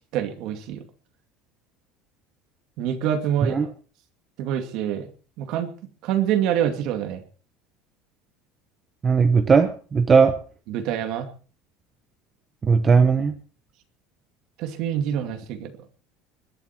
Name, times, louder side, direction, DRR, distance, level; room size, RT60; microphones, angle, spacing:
voice 1, 0.1-0.8 2.8-3.6 4.4-5.1 5.4-5.7 6.0-7.2 10.7-11.3 14.6-15.7, right 10 dB, 50° right, 8 dB, 2.4 m, -26 dB
voice 2, 9.0-10.4 12.6-13.4, right 5 dB, 15° right, 9 dB, 1.0 m, -18 dB
21.0 x 11.5 x 4.5 m, 0.39 s
cardioid pair, 175°, 0 cm